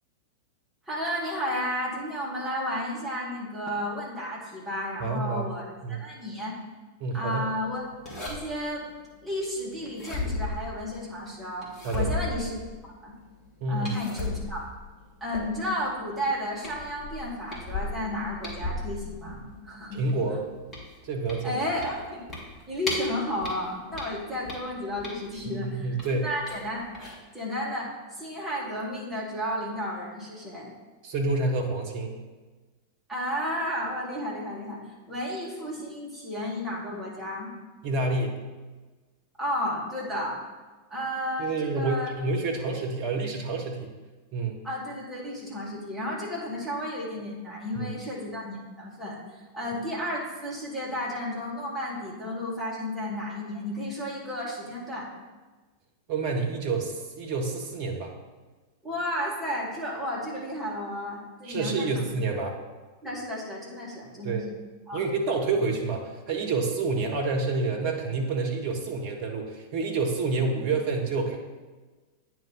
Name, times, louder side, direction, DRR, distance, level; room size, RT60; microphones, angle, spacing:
voice 1, 0.9-6.6 7.1-7.8 8.2-8.9 9.2-12.6 13.0-13.1 13.7-14.7 15.2-20.0 21.4-22.2 22.7-26.9 27.3-30.7 33.1-34.8 35.1-37.5 39.4-40.4 40.9-42.1 44.6-55.1 58.8-62.1 63.0-64.4 64.9-65.0, left 1 dB, 5° right, -6 dB, 2.2 m, -32 dB
voice 2, 5.0-5.5 5.8-6.0 7.0-7.5 11.8-12.1 13.6-13.9 19.9-20.4 21.0-21.6 25.4-26.3 31.0-32.2 37.8-38.4 41.4-43.9 44.3-44.6 47.7-47.9 56.1-58.1 61.4-62.5 64.2-64.4 64.9-71.4, right 3 dB, 45° right, 2 dB, 1.2 m, -28 dB
sound 1, 8.0-8.7 9.8-11.1 11.6-13.0 13.8-15.8 16.2-16.4 16.6-19.6 20.0-23.1 23.4-25.4 26.0-26.6 26.9-27.1, left 2 dB, 25° left, 1.9 m, -35 dB
9.1 x 3.1 x 5.3 m, 1.3 s
figure-of-eight pair, 90°, 0 cm